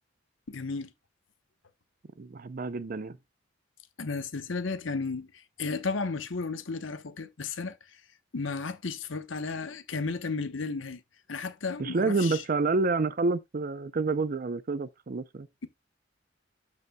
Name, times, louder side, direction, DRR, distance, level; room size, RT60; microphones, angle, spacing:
voice 1, 0.5-0.9 4.0-8.0 8.3-11.0 11.3-12.4, left 4 dB, 75° left, 0.9 m, -34 dB
voice 2, 2.2-3.2 11.8-15.5, right 3 dB, 45° right, 0.5 m, -28 dB
12.5 x 5.3 x 2.2 m
head